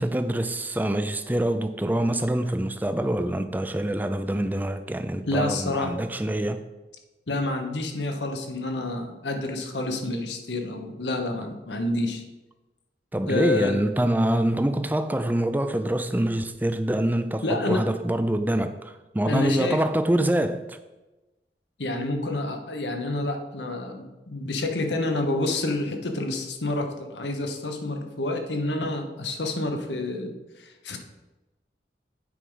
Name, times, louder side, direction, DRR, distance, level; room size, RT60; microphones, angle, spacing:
voice 1, 0.0-6.6 13.1-20.8, right 1 dB, 10° right, 0.4 m, -25 dB
voice 2, 5.3-6.0 7.3-12.2 13.3-13.8 17.4-17.8 19.2-19.8 21.8-31.0, left 2 dB, 90° left, 1.1 m, -28 dB
8.4 x 4.8 x 5.5 m
head